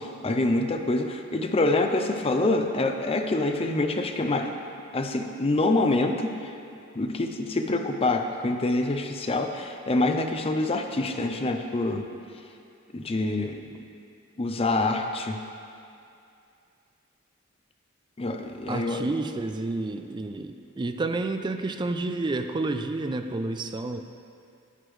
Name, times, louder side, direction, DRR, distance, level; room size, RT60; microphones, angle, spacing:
voice 1, 0.0-4.5 4.9-6.5 6.9-12.0 12.9-13.8 14.4-15.4 18.2-19.0, left 2 dB, 30° left, 5 dB, 0.5 m, -26 dB
voice 2, 18.7-24.1, right 2 dB, 20° right, 7 dB, 0.3 m, -30 dB
10.5 x 8.1 x 3.2 m, 2.5 s
head